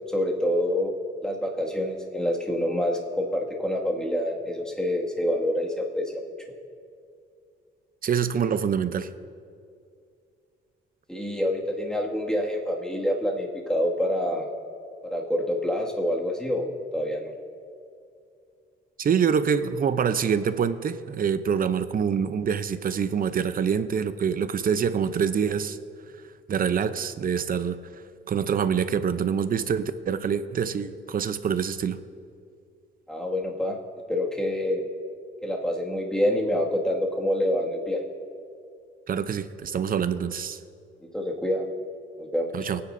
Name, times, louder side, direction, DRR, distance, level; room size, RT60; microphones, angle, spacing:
voice 1, 0.1-0.9 1.2-6.2 11.1-14.5 15.0-17.3 33.1-33.8 34.1-34.8 35.4-38.0 41.1-41.6 42.2-42.6, left 1 dB, 5° left, -1 dB, 2.1 m, -27 dB
voice 2, 8.0-9.1 19.0-25.8 26.5-27.8 28.3-32.0 39.1-40.6 42.5-42.8, right 7 dB, 45° right, 12 dB, 0.7 m, -25 dB
28.5 x 9.7 x 2.7 m, 2.3 s
cardioid pair, 90°, 20 cm